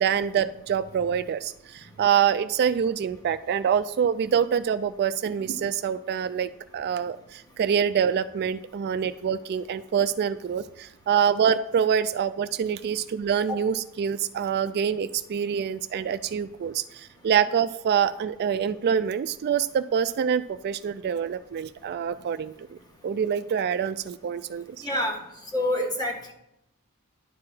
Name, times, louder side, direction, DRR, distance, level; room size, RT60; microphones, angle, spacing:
voice 1, 0.0-22.8 23.0-24.8, right 8 dB, 50° right, 12 dB, 0.3 m, -26 dB
voice 2, 24.8-25.2 25.5-26.3, left 1 dB, 20° left, 1 dB, 1.6 m, -26 dB
10.5 x 4.7 x 6.0 m, 0.82 s
head